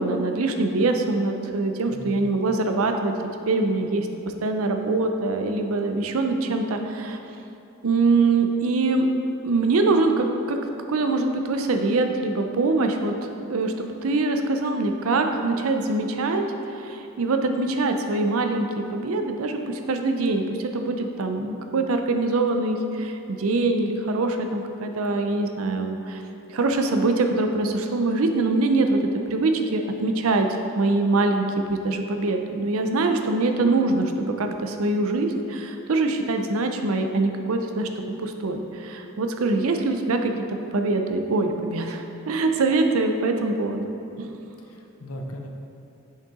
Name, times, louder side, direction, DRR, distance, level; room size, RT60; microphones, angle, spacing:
voice 1, 0.0-3.1 3.5-4.1 4.4-7.2 7.8-9.1 9.4-10.6 10.9-13.7 14.0-16.5 16.7-26.2 26.5-29.0 29.3-30.5 30.7-37.9 38.2-43.9 44.2-44.3, right 3 dB, 75° right, 5 dB, 0.5 m, -23 dB
voice 2, 1.9-2.4 44.7-45.5, equal, 80° left, 2 dB, 0.8 m, -37 dB
6.6 x 5.5 x 3.7 m, 2.8 s
head